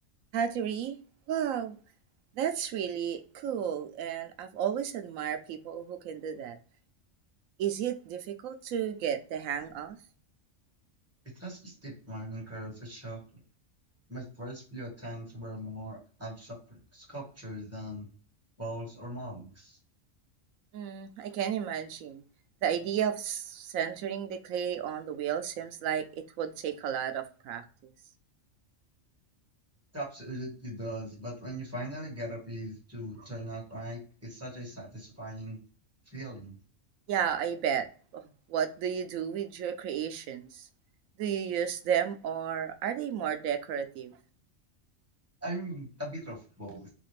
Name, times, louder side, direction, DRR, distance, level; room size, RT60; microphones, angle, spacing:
voice 1, 0.3-1.0 1.3-1.8 2.4-6.6 7.6-10.0 20.7-22.2 22.6-27.6 37.1-37.9 38.1-40.7 41.2-44.2 46.7-46.8, right 8 dB, 90° right, 1.0 m, -32 dB
voice 2, 11.3-13.4 14.1-18.1 18.6-19.8 29.9-35.6 36.0-36.6 45.4-46.9, right 1 dB, 10° right, 1.4 m, -40 dB
4.1 x 2.4 x 3.1 m
omnidirectional pair, 1.4 m